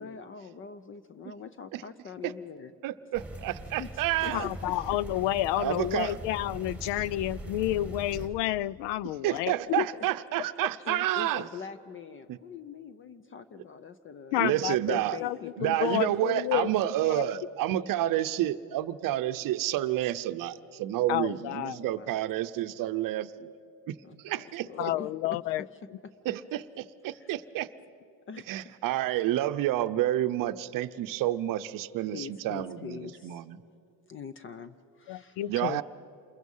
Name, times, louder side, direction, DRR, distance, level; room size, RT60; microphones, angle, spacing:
voice 1, 0.0-2.7 3.8-3.9 4.2-4.7 6.8-7.3 9.7-10.1 10.8-14.4 14.9-15.8 21.3-22.2 24.0-25.4 26.0-26.4 27.1-27.3 28.3-28.7 32.1-33.5 34.1-35.4, left 5 dB, 30° left, 13 dB, 0.6 m, -43 dB
voice 2, 2.8-4.5 5.6-6.2 9.2-11.5 12.3-12.4 14.3-15.2 15.6-23.5 23.9-24.0 24.2-24.9 26.2-27.7 28.5-33.6 35.5-35.8, right 14 dB, 50° right, 12 dB, 0.8 m, -29 dB
sound 1, 3.1-8.3, right 1 dB, 5° right, 2.5 m, -41 dB
voice 3, 4.3-9.8 14.3-17.3 21.1-21.8 24.8-25.6 35.1-35.8, left 15 dB, 70° left, 22 dB, 0.6 m, -30 dB
28.5 x 22.0 x 5.5 m, 2.5 s
cardioid pair, 145°, 43 cm